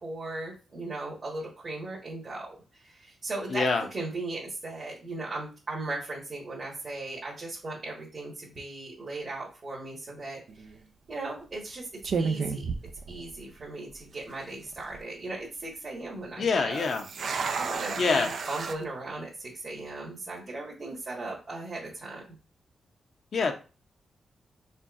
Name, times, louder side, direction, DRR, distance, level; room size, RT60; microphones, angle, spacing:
voice 1, 0.0-10.4 11.1-11.9 12.2-12.7 13.1-16.8 17.5-22.2, right 2 dB, 55° right, -5 dB, 1.6 m, -37 dB
voice 2, 3.5-3.8 16.4-17.0 18.0-18.3 23.3-23.5, left 4 dB, 65° left, 5 dB, 0.7 m, -25 dB
sound 1, 10.5-10.8 11.5-11.7 12.0-13.6 13.9-14.0 14.6-15.0 16.7-18.8, right 5 dB, 70° right, 0.5 m, -32 dB
4.3 x 3.7 x 2.5 m, 0.33 s
cardioid pair, 55°, 0 cm